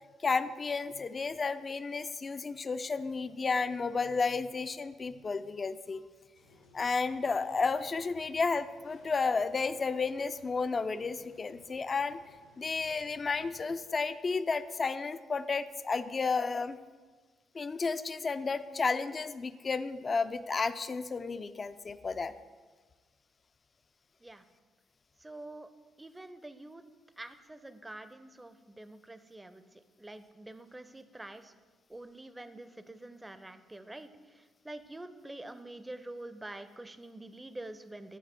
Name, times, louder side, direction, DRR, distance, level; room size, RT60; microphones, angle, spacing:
voice 1, 0.2-6.0 6.7-12.2 12.6-16.8 17.5-22.3, left 4 dB, 40° left, 12 dB, 0.3 m, -32 dB
sound 1, 6.3-13.7, left 1 dB, 85° left, 1.2 m, -61 dB
voice 2, 25.2-25.7 26.0-26.8 27.2-31.5 31.9-38.2, right 1 dB, 15° right, 11 dB, 0.5 m, -46 dB
9.2 x 4.1 x 4.2 m, 1.4 s
hypercardioid pair, 45°, 0 cm